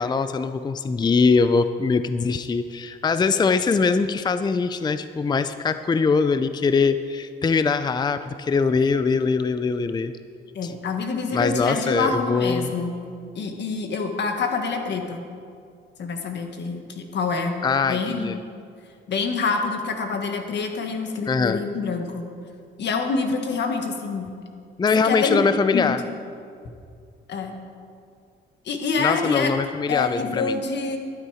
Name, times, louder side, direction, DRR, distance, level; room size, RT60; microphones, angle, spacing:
voice 1, 0.0-10.1 10.6-10.7 11.3-12.7 17.6-18.4 21.3-21.6 24.8-26.0 29.0-30.6, left 4 dB, 20° left, 11 dB, 0.5 m, -22 dB
voice 2, 10.5-13.0 13.3-15.2 16.0-17.6 17.9-18.3 19.1-22.3 22.8-24.3 25.0-25.4 25.7-25.9 27.3-27.5 28.6-29.5 29.9-31.0, left 4 dB, 60° left, 4 dB, 1.6 m, -26 dB
12.5 x 11.5 x 5.0 m, 2.4 s
cardioid pair, 90°, 20 cm